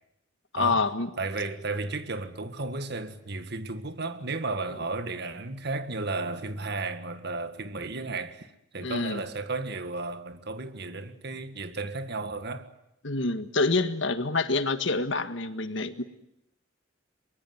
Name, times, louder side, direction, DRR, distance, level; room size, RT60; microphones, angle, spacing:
voice 1, 0.5-1.1 8.8-9.2 13.0-16.0, left 3 dB, 65° left, 1.7 m, -27 dB
voice 2, 1.2-12.7, right 3 dB, 55° right, 1.9 m, -34 dB
23.5 x 21.5 x 9.6 m
head